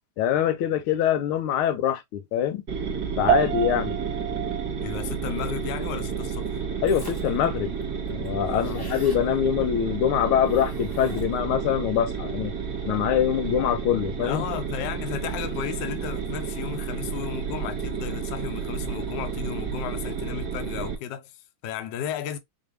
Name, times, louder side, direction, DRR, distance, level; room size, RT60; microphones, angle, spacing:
voice 1, 0.2-2.6 3.2-4.0 6.8-7.7 8.1-12.5 12.8-14.5, left 9 dB, 90° left, 1.5 m, -24 dB
sound 1, 2.7-20.9, right 6 dB, 40° right, 1.3 m, -31 dB
sound 2, 3.3-12.9, right 13 dB, 75° right, 1.3 m, -34 dB
voice 2, 4.8-6.6 8.5-8.8 14.2-22.4, left 9 dB, 65° left, 1.2 m, -34 dB
sound 3, 6.9-7.4 7.8-7.9 8.1-9.2 10.5-11.5, left 1 dB, 30° left, 0.4 m, -45 dB
4.8 x 2.7 x 3.0 m
omnidirectional pair, 2.3 m